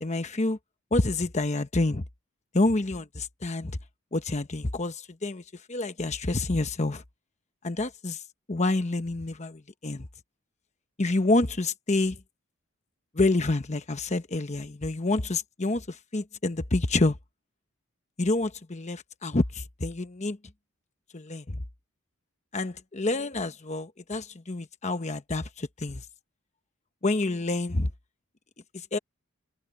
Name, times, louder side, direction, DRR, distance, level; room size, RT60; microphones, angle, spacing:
voice 1, 0.0-0.6 0.9-2.0 2.5-3.7 4.1-5.4 5.7-7.0 7.6-8.2 8.5-10.1 11.0-12.2 13.1-17.2 18.2-20.4 21.1-21.6 22.5-26.0 27.0-27.9 28.9-29.0, left 2 dB, 35° left, 1.0 m, -28 dB
head